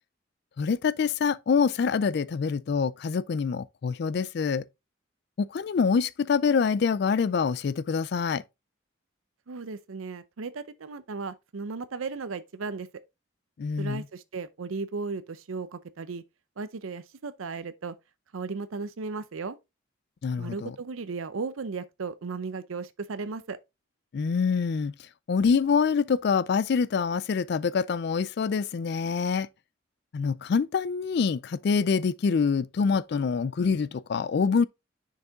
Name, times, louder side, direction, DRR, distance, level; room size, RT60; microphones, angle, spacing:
voice 1, 0.6-4.7 5.4-8.4 13.6-14.0 20.2-20.8 24.1-24.9 25.3-29.5 30.1-34.6, left 5 dB, 55° left, 0.3 m, -25 dB
voice 2, 9.5-12.9 13.8-16.2 16.6-17.9 18.3-19.6 20.4-23.6, right 4 dB, 90° right, 0.6 m, -35 dB
6.6 x 4.7 x 3.5 m
head